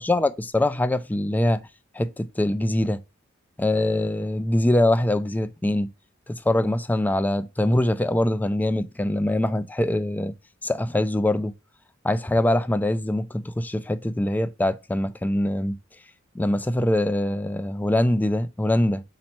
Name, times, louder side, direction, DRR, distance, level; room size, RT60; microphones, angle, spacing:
voice 1, 0.0-1.6 1.9-3.0 3.6-5.9 6.3-10.3 10.6-11.5 12.0-15.8 16.3-19.0, left 1 dB, 10° left, 0.3 m, -23 dB
4.2 x 2.9 x 4.3 m
head